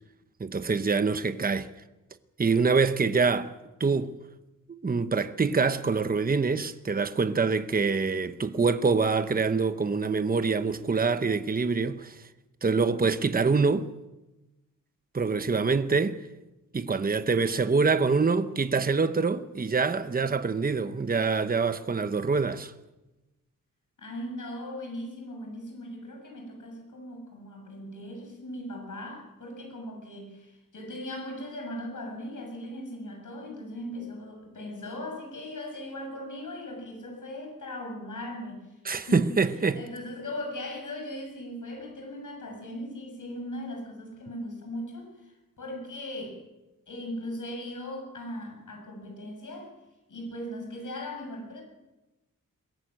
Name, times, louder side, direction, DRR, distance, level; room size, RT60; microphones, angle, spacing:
voice 1, 0.4-1.7 2.4-3.5 3.8-4.1 4.8-12.2 12.6-13.9 15.1-16.2 16.7-22.7 38.8-39.8, right 4 dB, 25° right, 0.9 m, -25 dB
voice 2, 24.0-38.6 38.9-39.3 39.8-45.3 45.6-46.4 46.9-49.7 50.1-51.6, left 1 dB, 65° left, 7.1 m, -38 dB
22.0 x 17.5 x 7.7 m
wide cardioid pair, 155°, 33 cm